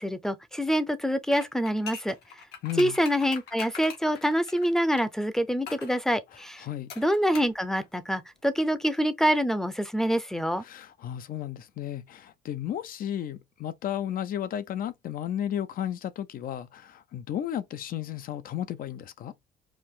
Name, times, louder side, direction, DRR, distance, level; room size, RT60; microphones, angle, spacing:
voice 1, 0.0-2.2 2.8-6.6 7.0-10.6, equal, 5° left, 0.6 m, -26 dB
opening mono, 1.3-5.1 5.7-6.0 6.9-7.6 7.8-7.9, left 6 dB, 80° left, 1.6 m, -42 dB
voice 2, 2.6-3.0 6.6-6.9 10.6-19.3, left 10 dB, 55° left, 0.6 m, -33 dB
4.8 x 2.5 x 3.6 m
cardioid pair, 110°, 17 cm